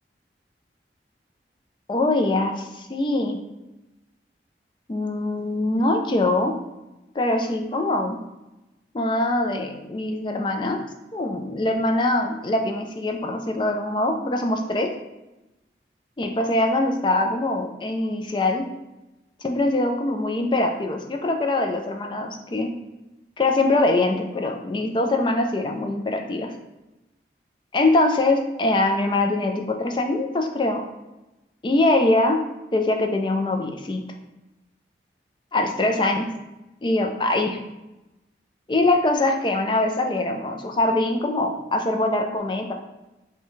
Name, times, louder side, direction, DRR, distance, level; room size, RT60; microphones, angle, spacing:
voice 1, 1.9-3.4 4.9-6.5 7.2-8.2 8.9-10.8 11.1-14.9 16.2-18.7 19.4-22.7 23.4-26.5 27.7-30.8 31.6-32.4 32.7-34.0 35.5-36.3 36.8-37.6 38.7-42.7, left 2 dB, 25° left, 3 dB, 0.4 m, -23 dB
5.5 x 2.2 x 3.1 m, 0.99 s
head